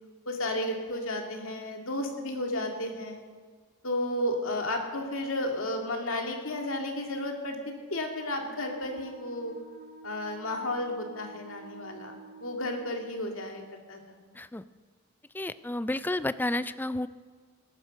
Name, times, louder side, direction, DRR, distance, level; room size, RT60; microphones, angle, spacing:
voice 1, 0.3-3.2 3.8-7.6 7.9-9.5 10.0-12.1 12.4-13.6 13.9-14.0, left 1 dB, 70° left, 3 dB, 2.4 m, -32 dB
Wind instrument woodwind instrument, 8.0-13.2, right 3 dB, 50° right, 2.1 m, -49 dB
voice 2, 15.3-17.1, left 1 dB, 10° left, 14 dB, 0.4 m, -31 dB
18.0 x 10.5 x 6.4 m, 1.5 s
head